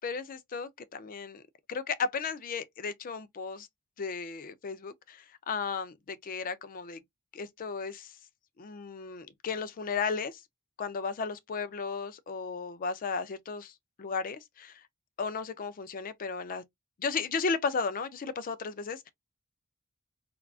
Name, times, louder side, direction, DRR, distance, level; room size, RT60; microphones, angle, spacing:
voice 1, 0.0-1.4 1.7-3.7 4.0-7.0 7.3-8.1 8.6-10.4 10.8-13.7 14.0-14.8 15.2-16.6 17.0-19.1, left 5 dB, 40° left, 0.4 m, -34 dB
3.5 x 2.4 x 2.3 m
head